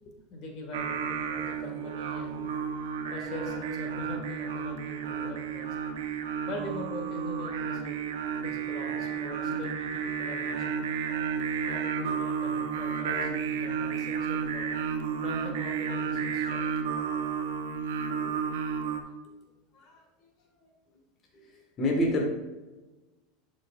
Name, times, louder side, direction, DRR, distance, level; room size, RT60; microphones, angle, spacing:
voice 1, 0.3-5.8 6.5-8.0 8.4-10.9 11.6-14.7 15.2-16.7 17.1-17.4 19.7-20.3 20.6-21.0 21.3-21.7, left 2 dB, 50° left, 1 dB, 1.7 m, -42 dB
Singing, 0.7-19.0, right 7 dB, 80° right, 0.8 m, -32 dB
voice 2, 21.8-22.2, left 1 dB, 35° left, -1 dB, 1.5 m, -25 dB
11.0 x 5.2 x 2.4 m, 1.2 s
supercardioid pair, 115°, 0 cm